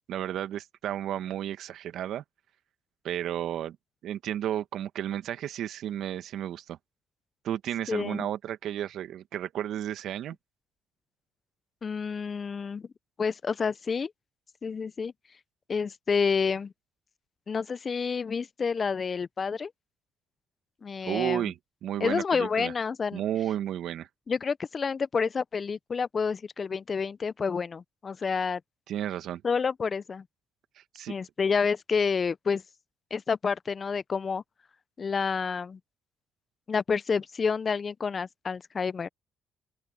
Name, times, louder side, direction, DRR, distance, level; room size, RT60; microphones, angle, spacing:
voice 1, 0.1-2.2 3.0-3.7 4.0-6.8 7.4-10.3 21.0-22.7 23.1-24.1 28.9-29.4 30.9-31.1, right 11 dB, 70° right, 1.8 m, -32 dB
voice 2, 7.9-8.3 11.8-12.9 13.2-14.1 14.6-15.1 15.7-16.7 17.5-19.7 20.8-21.5 22.0-23.2 24.3-28.6 29.4-30.2 31.1-32.6 33.1-34.4 35.0-35.8 36.7-39.1, left 5 dB, 45° left, 0.9 m, -29 dB
open air
hypercardioid pair, 55°, 0 cm